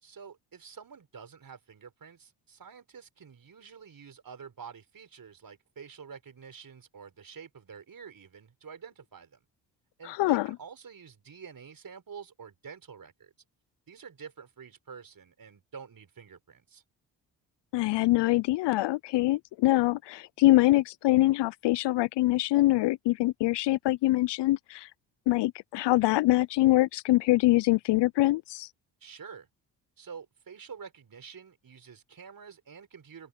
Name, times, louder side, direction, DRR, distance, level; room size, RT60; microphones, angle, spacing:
voice 1, 0.0-9.4 10.0-13.3 13.9-16.8 29.0-29.5 30.0-33.3, right 6 dB, 45° right, 5.0 m, -48 dB
voice 2, 10.0-10.5 17.7-24.9 25.3-28.7, left 17 dB, 60° left, 0.6 m, -24 dB
open air
hypercardioid pair, 55°, 48 cm